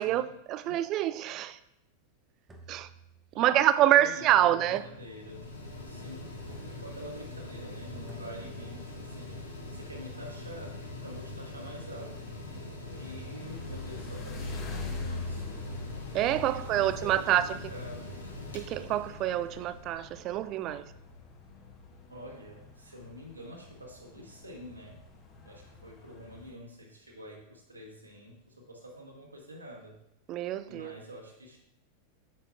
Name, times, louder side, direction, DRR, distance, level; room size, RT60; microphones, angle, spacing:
voice 1, 0.0-1.6 2.7-2.9 3.3-4.8 16.1-17.5 18.5-20.8 30.3-30.9, right 12 dB, 35° right, 0.3 m, -26 dB
sound 1, 2.5-3.7 4.8-5.6 6.5-7.1 8.1-8.7, right 3 dB, 15° right, 0.8 m, -55 dB
voice 2, 3.3-3.6 3.9-5.5 5.8-6.3 6.7-9.3 9.7-12.2 12.9-15.9 16.4-18.2 19.5-19.6 22.1-25.0 25.4-30.0 30.7-31.6, equal, 85° right, 1.1 m, -47 dB
Mechanical fan, 4.1-20.4, left 2 dB, 75° left, 1.1 m, -43 dB
sound 2, 12.8-26.5, left 3 dB, 35° left, 1.0 m, -43 dB
8.5 x 5.8 x 2.4 m
figure-of-eight pair, 90°, 0 cm